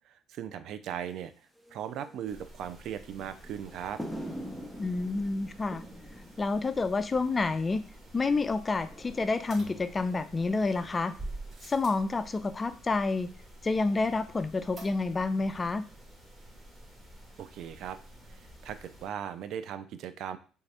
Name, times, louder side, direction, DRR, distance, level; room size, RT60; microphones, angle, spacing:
voice 1, 0.0-1.3 1.7-4.0 17.4-18.0 18.3-20.4, right 9 dB, 65° right, 12 dB, 0.3 m, -38 dB
sound 1, 1.0-19.7, equal, 5° right, 0.7 m, -49 dB
sound 2, 2.2-19.1, equal, 25° right, 1.5 m, -52 dB
voice 2, 4.8-5.8 6.4-7.8 8.1-11.1 11.7-13.3 13.6-15.8, left 3 dB, 25° left, 11 dB, 0.3 m, -29 dB
sound 3, 9.5-10.5 11.2-12.1 14.8-15.4 15.7-15.8 16.0-16.1, right 2 dB, 45° right, 1.7 m, -43 dB
3.3 x 2.7 x 3.3 m, 0.37 s
supercardioid pair, 80°, 0 cm